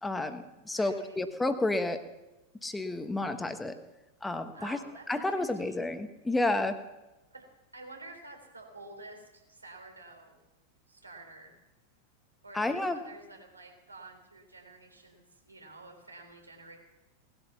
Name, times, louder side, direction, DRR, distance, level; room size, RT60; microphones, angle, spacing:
voice 1, 0.0-2.0 2.6-3.7 4.2-4.8 5.1-6.8 12.5-13.0, left 2 dB, 10° left, 8 dB, 1.5 m, -30 dB
voice 2, 0.7-1.2 4.5-5.9 7.3-7.4 7.7-10.4 10.9-11.6 12.4-16.8, right 2 dB, 80° right, 3 dB, 3.7 m, -50 dB
19.5 x 12.5 x 5.8 m, 1.0 s
figure-of-eight pair, 90°, 0 cm